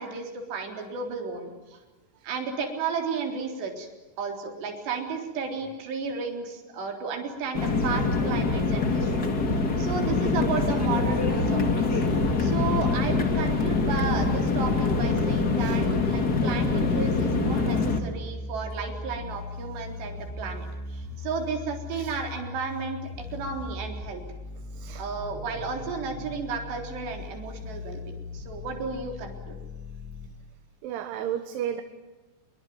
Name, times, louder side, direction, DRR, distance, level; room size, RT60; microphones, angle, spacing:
voice 1, 0.0-1.8 2.2-3.9 4.2-9.3 9.8-12.0 12.4-24.2 25.0-29.6, right 5 dB, 60° right, 3 dB, 5.9 m, -33 dB
sound 1, 7.5-18.0, left 3 dB, 40° left, 1.3 m, -24 dB
sound 2, 12.3-30.3, left 3 dB, 75° left, 6.6 m, -38 dB
voice 2, 24.7-25.0 30.8-31.8, right 10 dB, 75° right, 8 dB, 3.7 m, -33 dB
26.5 x 22.5 x 9.5 m, 1.1 s
omnidirectional pair, 5.6 m